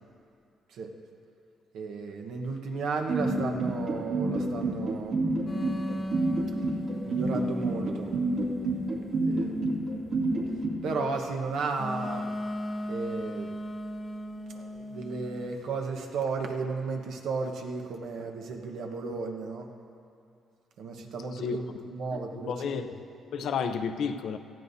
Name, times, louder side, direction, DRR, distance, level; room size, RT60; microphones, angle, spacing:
voice 1, 1.7-5.2 7.0-8.1 9.2-9.6 10.8-12.3 12.9-13.5 14.4-19.7 20.8-22.9, right 4 dB, 80° right, 3 dB, 1.2 m, -34 dB
sound 1, 3.1-10.7, right 3 dB, 65° right, 2.4 m, -27 dB
sound 2, 5.5-9.5 11.8-15.5, equal, 30° left, 0.8 m, -37 dB
voice 2, 22.1-23.0 23.3-24.4, left 6 dB, 70° left, 9 dB, 0.6 m, -32 dB
18.5 x 14.0 x 2.8 m, 2.5 s
cardioid pair, 90°, 0 cm